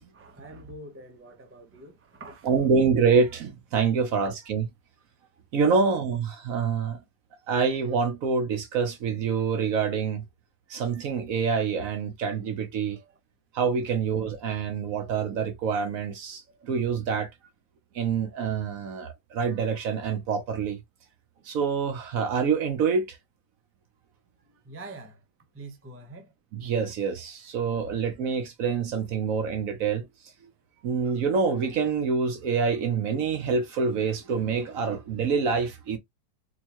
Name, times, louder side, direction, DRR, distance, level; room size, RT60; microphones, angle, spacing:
voice 1, 0.1-2.7 5.7-5.9 13.0-13.1 24.6-25.2 25.5-26.3, right 2 dB, 15° right, 0.4 m, -45 dB
voice 2, 2.4-4.7 5.5-7.0 7.5-10.2 10.7-13.0 13.5-17.3 17.9-20.8 21.5-23.2 26.5-30.0 30.8-36.0, right 5 dB, 65° right, 1.1 m, -26 dB
4.5 x 2.2 x 2.9 m
omnidirectional pair, 1.7 m